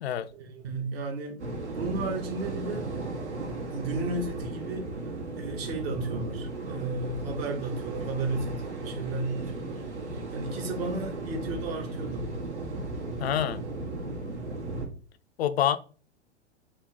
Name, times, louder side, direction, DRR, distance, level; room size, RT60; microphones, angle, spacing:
voice 1, 0.3-2.9 3.7-4.8 5.4-9.8 10.1-12.3, right 3 dB, 55° right, 1.5 m, -34 dB
sound 1, 1.4-14.9, right 2 dB, 70° right, 1.5 m, -36 dB
voice 2, 13.2-13.6 15.4-15.8, left 10 dB, 60° left, 0.5 m, -26 dB
4.1 x 2.7 x 4.8 m
figure-of-eight pair, 100°, 35 cm